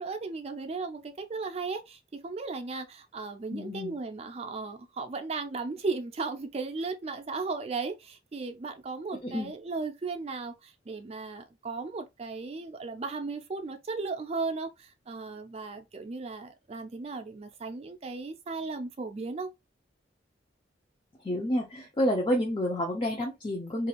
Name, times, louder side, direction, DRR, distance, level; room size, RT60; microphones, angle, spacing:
voice 1, 0.0-19.5, right 4 dB, 35° right, 0.4 m, -36 dB
voice 2, 3.5-4.0 9.2-9.5 21.2-23.9, equal, 30° left, 0.5 m, -29 dB
2.5 x 2.3 x 2.9 m
head